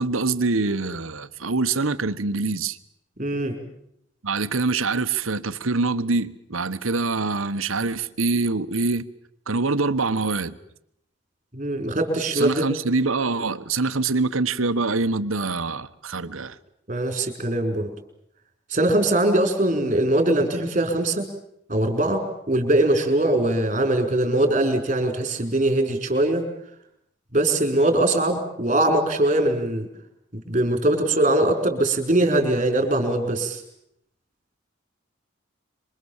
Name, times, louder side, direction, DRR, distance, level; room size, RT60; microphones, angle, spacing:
voice 1, 0.0-2.8 4.2-9.0 9.5-10.6 12.3-16.6, right 3 dB, 85° right, 1.2 m, -24 dB
voice 2, 3.2-3.6 11.5-12.7 16.9-17.9 18.7-21.3 21.7-26.5 27.3-29.9 30.3-33.6, right 1 dB, 35° right, 5.2 m, -22 dB
27.0 x 24.5 x 7.3 m
head